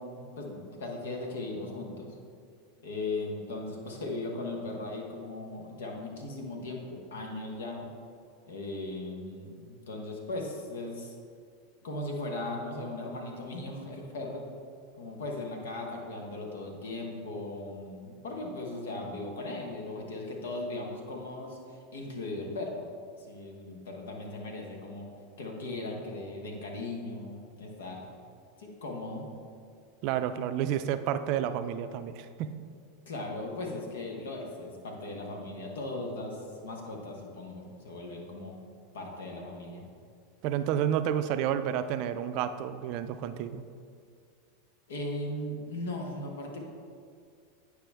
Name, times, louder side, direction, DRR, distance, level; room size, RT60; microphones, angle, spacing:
voice 1, 0.0-2.1 2.8-7.9 8.4-11.1 11.8-14.4 15.0-22.8 23.2-25.1 25.4-28.1 28.6-29.3 33.1-38.6 38.9-39.8 44.9-46.7, left 2 dB, 75° left, 1 dB, 1.2 m, -38 dB
voice 2, 30.0-32.5 40.4-43.6, right 10 dB, 55° right, 11 dB, 0.4 m, -30 dB
9.2 x 4.9 x 3.5 m, 2.2 s
hypercardioid pair, 90°, 0 cm